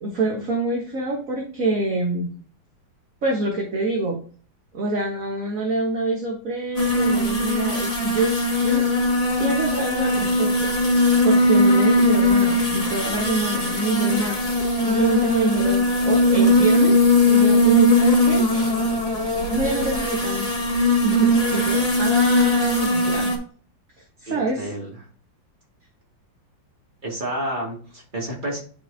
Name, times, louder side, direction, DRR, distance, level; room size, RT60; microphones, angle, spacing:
voice 1, 0.0-2.3 3.2-4.2 4.7-8.9 9.4-14.4 14.8-18.7 19.5-20.5 21.0-23.3 24.2-24.7, right 2 dB, 45° right, -1 dB, 1.8 m, -26 dB
sound 1, 6.8-23.4, left 1 dB, 20° left, 2.2 m, -19 dB
voice 2, 24.3-25.0 27.0-28.6, right 1 dB, 25° right, -2 dB, 2.7 m, -30 dB
11.0 x 5.2 x 2.8 m, 0.41 s
omnidirectional pair, 2.1 m